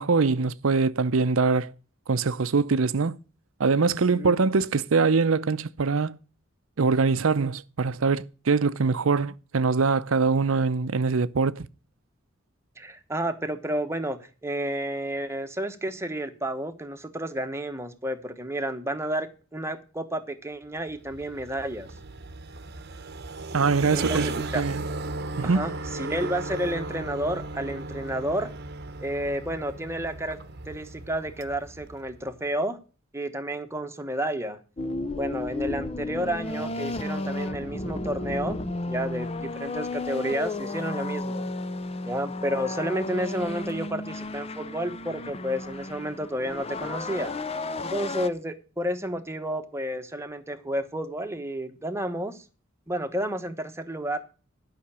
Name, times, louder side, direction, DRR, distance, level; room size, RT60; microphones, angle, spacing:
voice 1, 0.0-1.7 2.1-3.2 3.6-6.2 6.8-11.7 23.5-24.8 25.4-25.6, right 4 dB, 85° right, 0.6 m, -23 dB
voice 2, 12.8-21.9 23.9-24.6 25.4-28.5 29.0-30.4 30.7-32.8 33.1-34.6 35.1-38.6 38.9-41.5 42.1-47.3 47.8-52.4 52.9-54.2, right 1 dB, 15° right, 1.1 m, -31 dB
sound 1, 20.8-32.4, right 2 dB, 50° right, 0.9 m, -36 dB
sound 2, 34.8-48.3, left 2 dB, 30° left, 0.6 m, -33 dB
11.5 x 5.8 x 8.7 m
head